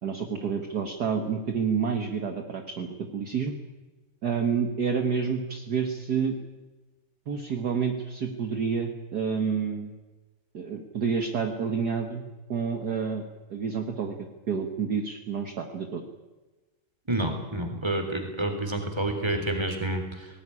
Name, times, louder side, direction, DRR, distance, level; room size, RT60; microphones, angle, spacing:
voice 1, 0.0-3.6 4.2-6.4 7.3-9.9 10.5-12.2 12.5-13.2 13.5-14.2 14.5-16.0, right 6 dB, 50° right, 5 dB, 1.9 m, -29 dB
voice 2, 17.1-20.3, right 1 dB, 10° right, 6 dB, 3.4 m, -29 dB
19.0 x 18.5 x 10.0 m, 1.2 s
omnidirectional pair, 2.4 m